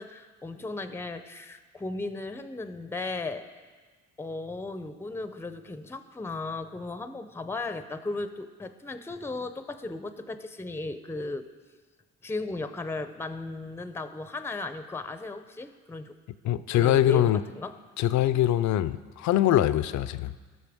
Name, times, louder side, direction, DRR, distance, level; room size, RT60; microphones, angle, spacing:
voice 1, 0.0-3.5 4.2-11.5 12.2-16.1 16.7-17.8, left 3 dB, 10° left, 10 dB, 0.5 m, -36 dB
voice 2, 16.4-17.4 18.0-20.3, left 12 dB, 70° left, 14 dB, 0.5 m, -23 dB
18.0 x 6.5 x 3.5 m, 1.5 s
cardioid pair, 90°, 30 cm